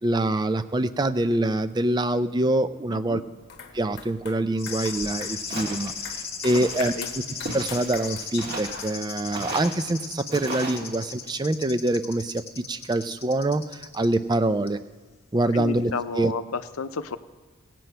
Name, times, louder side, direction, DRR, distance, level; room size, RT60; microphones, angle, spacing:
voice 1, 0.0-3.2 3.7-7.0 7.5-14.8 15.3-16.3, right 1 dB, 20° right, 12 dB, 0.4 m, -25 dB
voice 2, 2.9-3.2 6.5-6.7 6.9-7.1 15.5-17.2, left 4 dB, 85° left, 11 dB, 0.6 m, -32 dB
sound 1, 3.4-9.4, left 6 dB, 50° left, 1.1 m, -43 dB
sound 2, 4.6-14.4 14.7-14.8, left 5 dB, 25° left, 1.3 m, -37 dB
Walk footsteps, 5.5-5.9 6.5-6.9 7.4-8.0 8.4-8.8 9.3-9.8 10.3-10.8, right 2 dB, 45° right, 2.0 m, -35 dB
17.5 x 7.6 x 5.6 m, 1.4 s
head